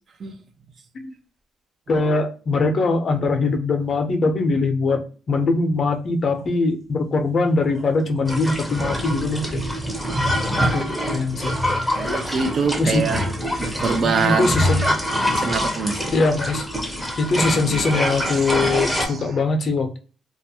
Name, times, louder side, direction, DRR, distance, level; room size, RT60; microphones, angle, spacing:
voice 1, 1.9-9.6 10.7-11.5 12.8-13.0 14.0-14.9 16.1-16.6 17.2-20.0, left 3 dB, 50° left, 0.6 m, -22 dB
sound 1, 6.4-6.5 7.0-7.1 7.6-8.5 8.8-9.5 9.8-12.4 12.9-13.8 14.3-15.8 16.1-16.8 17.1-17.2 17.7-18.1, equal, 35° right, 0.8 m, -30 dB
sound 2, 8.3-19.1, equal, ahead, 0.6 m, -25 dB
voice 2, 12.0-13.3 13.6-14.5 15.3-16.0 18.0-18.1 18.9-19.3, right 5 dB, 50° right, 0.4 m, -24 dB
2.3 x 2.1 x 2.7 m
cardioid pair, 90°, 0 cm